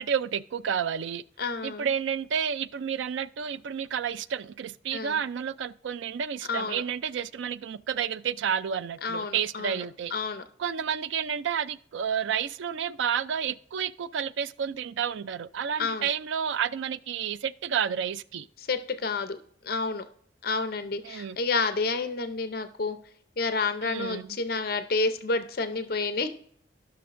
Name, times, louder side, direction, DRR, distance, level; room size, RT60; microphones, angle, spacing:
voice 1, 0.0-1.2 1.6-10.1 10.6-18.5 21.0-21.4 23.8-24.4, right 7 dB, 85° right, 0.4 m, -30 dB
voice 2, 1.4-1.9 4.9-5.2 6.5-6.8 9.0-9.8 10.1-10.4 15.8-16.1 18.6-19.4 19.6-20.1 20.4-23.0 23.4-26.3, left 3 dB, 50° left, 0.6 m, -29 dB
15.5 x 5.9 x 2.5 m
head